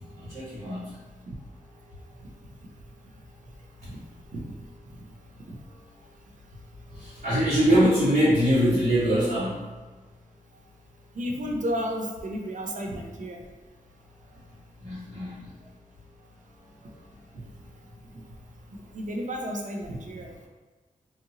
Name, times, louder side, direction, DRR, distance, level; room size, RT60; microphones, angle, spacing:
voice 1, 0.1-0.9 6.9-9.6 14.8-15.4, equal, 90° right, -16 dB, 1.4 m, -23 dB
voice 2, 11.1-13.4 17.3-17.4 18.7-20.5, equal, 60° right, 1 dB, 0.5 m, -33 dB
2.7 x 2.5 x 2.7 m, 1.3 s
cardioid pair, 50°, 15 cm